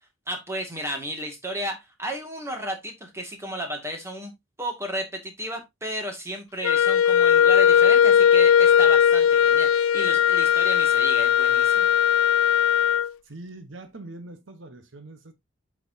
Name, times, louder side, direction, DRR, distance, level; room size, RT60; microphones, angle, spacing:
voice 1, 0.3-4.3 4.6-11.9, right 1 dB, 15° right, 2.1 m, -33 dB
Wind instrument woodwind instrument, 6.6-13.1, left 8 dB, 85° left, 0.3 m, -18 dB
voice 2, 13.2-15.3, right 2 dB, 70° right, 1.1 m, -42 dB
8.4 x 6.2 x 2.7 m
head